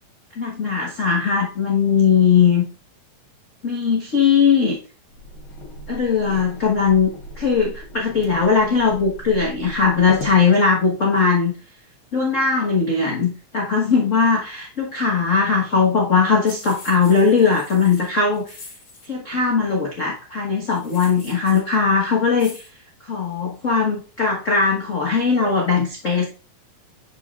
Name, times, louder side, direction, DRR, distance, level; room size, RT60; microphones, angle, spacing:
voice 1, 0.4-2.6 3.6-4.8 5.9-7.1 7.4-11.5 12.1-18.5 19.1-22.6 23.1-26.3, left 5 dB, 75° left, -2 dB, 0.7 m, -19 dB
sound 1, 5.1-10.4, equal, 55° left, 1.6 m, -37 dB
sound 2, 16.5-19.1 20.7-21.7 22.4-22.7, left 3 dB, 90° left, 4.3 m, -43 dB
11.0 x 5.4 x 2.4 m, 0.36 s
omnidirectional pair, 3.5 m